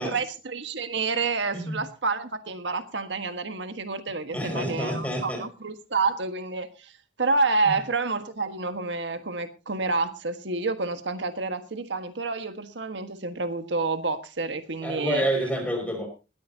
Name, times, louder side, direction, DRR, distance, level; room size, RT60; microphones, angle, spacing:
voice 1, 0.0-6.9 7.2-15.2, right 3 dB, 85° right, 9 dB, 1.5 m, -29 dB
voice 2, 4.3-5.4 14.8-16.1, right 1 dB, 10° left, 2 dB, 5.8 m, -28 dB
20.0 x 14.0 x 2.8 m, 0.31 s
head